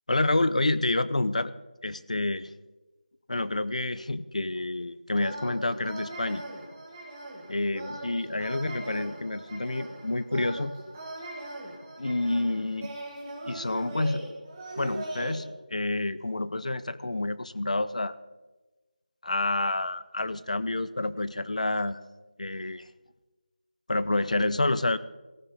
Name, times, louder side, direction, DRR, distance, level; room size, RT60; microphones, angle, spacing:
voice 1, 0.1-1.5 1.8-2.5 3.3-6.4 7.5-10.7 12.0-13.0 13.5-14.2 14.8-18.2 19.2-22.0 22.4-22.9 23.9-25.0, left 2 dB, 50° left, 16 dB, 0.6 m, -28 dB
sound 1, 5.2-15.4, right 1 dB, 15° right, 1.7 m, -40 dB
16.5 x 15.0 x 4.1 m, 1.2 s
figure-of-eight pair, 170°, 5 cm